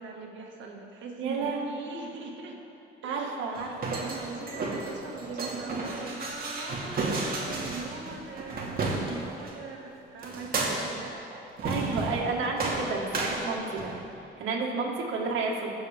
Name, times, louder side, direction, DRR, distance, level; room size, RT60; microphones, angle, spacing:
voice 1, 0.0-2.6 3.0-3.4 4.0-11.2, right 4 dB, 70° right, 0 dB, 2.0 m, -41 dB
voice 2, 1.2-1.6 3.0-4.0 11.3-14.0 14.4-15.7, right 4 dB, 85° right, -2 dB, 1.9 m, -31 dB
sound 1, 3.5-9.5 10.2-11.1 11.6-12.3 12.6-14.0, right 3 dB, 50° right, 2.2 m, -32 dB
20.5 x 7.2 x 3.6 m, 2.7 s
cardioid pair, 90°, 20 cm